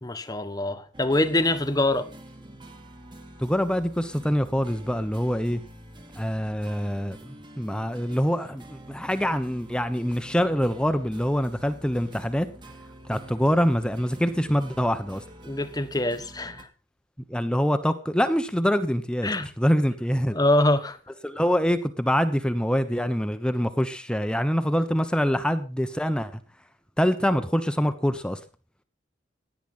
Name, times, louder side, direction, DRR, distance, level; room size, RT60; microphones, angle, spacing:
voice 1, 0.0-2.1 15.4-16.7 19.2-19.5 20.3-21.0, left 1 dB, 20° left, 1.4 m, -24 dB
sound 1, 0.9-16.6, right 1 dB, 25° right, 2.4 m, -46 dB
voice 2, 3.4-5.6 6.1-7.2 7.6-12.5 13.1-15.2 17.3-20.4 21.2-26.4 27.0-28.4, equal, 5° left, 1.1 m, -25 dB
17.0 x 10.5 x 5.7 m
head